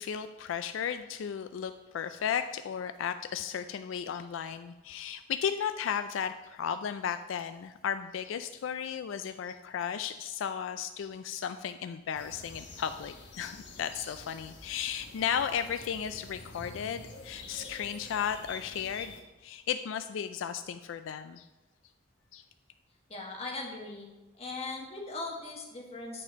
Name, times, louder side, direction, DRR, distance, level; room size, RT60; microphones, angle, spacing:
voice 1, 0.0-19.1 19.4-21.5 22.3-22.4, left 8 dB, 75° left, 10 dB, 0.3 m, -35 dB
sound 1, 12.1-19.2, left 3 dB, 60° left, 1.1 m, -48 dB
voice 2, 23.1-24.1 24.4-26.2, left 3 dB, 30° left, 0 dB, 1.4 m, -39 dB
9.8 x 4.3 x 5.0 m, 1.1 s
head